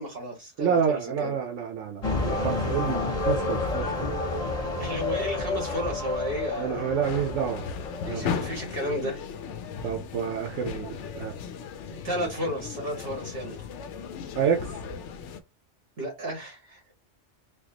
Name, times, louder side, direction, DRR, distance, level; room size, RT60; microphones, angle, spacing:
voice 1, 0.0-1.3 4.8-6.9 8.0-9.3 11.9-13.7 16.0-16.8, equal, 50° right, 2.0 m, -33 dB
voice 2, 0.6-4.1 6.6-7.6 8.1-8.3 9.8-11.3 12.2-12.3 14.3-14.8, right 7 dB, 85° right, 1.0 m, -28 dB
sound 1, 2.0-8.9, left 3 dB, 35° left, 0.9 m, -30 dB
sound 2, 7.0-15.4, left 6 dB, 80° left, 0.9 m, -36 dB
4.4 x 2.3 x 2.8 m
omnidirectional pair, 1.2 m